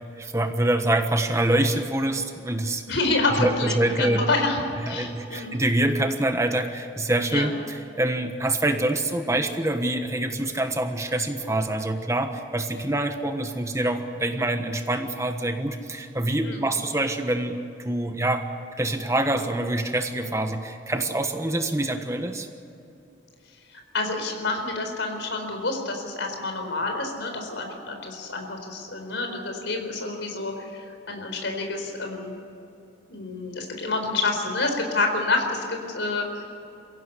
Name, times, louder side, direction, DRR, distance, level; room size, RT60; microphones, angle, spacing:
voice 1, 0.2-2.8 3.4-4.2 4.8-18.5 18.7-22.5, right 1 dB, 15° right, 6 dB, 1.2 m, -25 dB
voice 2, 2.9-5.5 7.3-7.5 16.4-16.7 23.7-32.4 33.1-36.4, left 3 dB, 75° left, 3 dB, 4.3 m, -28 dB
23.5 x 16.0 x 9.9 m, 2.8 s
head